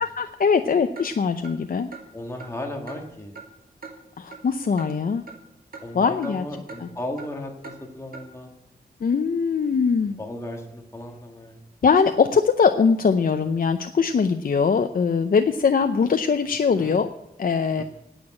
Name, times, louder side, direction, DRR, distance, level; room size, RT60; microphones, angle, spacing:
voice 1, 0.0-1.9 4.2-5.2 5.9-6.4 6.8-6.9 9.0-10.2 11.8-17.1 17.4-17.8, left 5 dB, 60° left, 8 dB, 0.6 m, -21 dB
Clock, 1.0-1.1 1.4-1.5 1.9-2.0 2.4-2.5 2.9-3.0 3.3-3.5 3.8-3.9 4.3-4.4 4.8-4.9 5.3-5.4 5.7-5.8 6.2-6.3 6.7-6.8 7.2-7.3 7.6-7.8 8.1-8.2, right 4 dB, 65° right, 2.2 m, -40 dB
voice 2, 2.1-3.4 5.8-8.5 10.2-11.5 16.8-17.0 17.8-17.9, left 1 dB, 15° left, 1 dB, 1.6 m, -35 dB
10.0 x 8.9 x 8.7 m, 0.85 s
wide cardioid pair, 125°, 17 cm